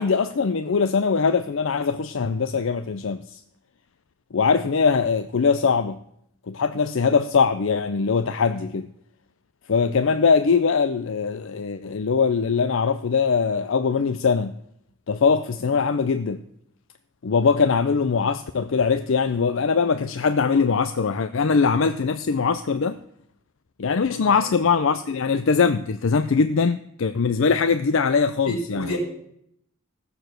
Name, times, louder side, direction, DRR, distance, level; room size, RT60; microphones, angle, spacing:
voice 1, 0.0-3.4 4.3-6.0 6.5-8.9 9.7-14.6 15.1-16.4 17.2-23.0 23.8-28.9, left 5 dB, 60° left, 0.5 m, -22 dB
voice 2, 28.4-29.0, left 1 dB, 85° left, 4.4 m, -30 dB
15.5 x 6.9 x 7.7 m
head